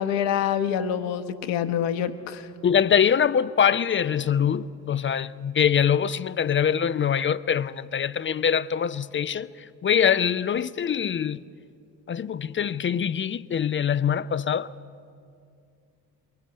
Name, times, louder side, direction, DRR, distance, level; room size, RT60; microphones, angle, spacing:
voice 1, 0.0-2.5, left 9 dB, 60° left, 1.3 m, -26 dB
voice 2, 2.6-9.5 9.8-11.4 12.1-14.7, left 8 dB, 25° left, 0.5 m, -23 dB
22.0 x 16.5 x 9.5 m
hypercardioid pair, 55°, 49 cm